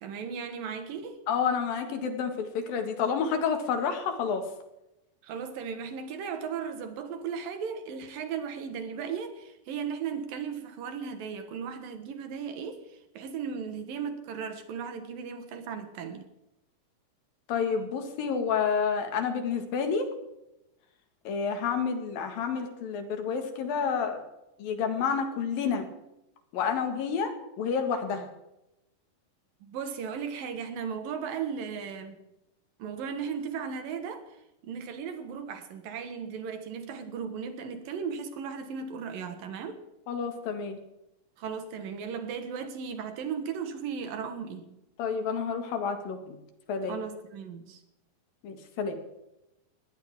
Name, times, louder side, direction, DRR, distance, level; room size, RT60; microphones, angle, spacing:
voice 1, 0.0-1.2 5.2-16.3 29.6-32.2 32.8-34.4 34.7-39.8 41.4-44.7 46.9-47.8, right 6 dB, 80° right, 3.3 m, -36 dB
voice 2, 1.3-4.4 17.5-20.1 21.3-24.2 24.6-25.9 26.5-28.3 40.1-40.8 45.0-46.4 46.7-47.0 48.4-49.0, left 6 dB, 90° left, 3.7 m, -29 dB
21.5 x 16.5 x 3.7 m
omnidirectional pair, 4.0 m